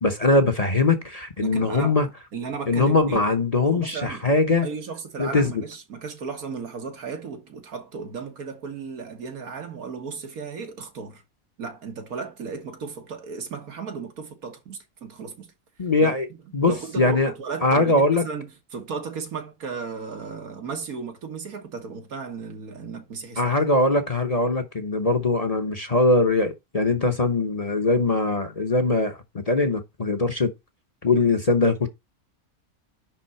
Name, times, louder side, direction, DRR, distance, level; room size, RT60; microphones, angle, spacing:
voice 1, 0.0-2.1 2.7-4.7 5.2-5.6 15.8-16.3 16.5-17.3 17.6-18.2 23.4-29.2 29.5-30.5 31.0-31.9, left 2 dB, 30° left, 0.9 m, -21 dB
voice 2, 1.4-3.3 3.6-4.2 4.6-11.2 11.6-15.5 16.0-16.1 16.7-23.6, right 5 dB, 80° right, 1.9 m, -35 dB
10.5 x 3.7 x 4.3 m
omnidirectional pair, 1.5 m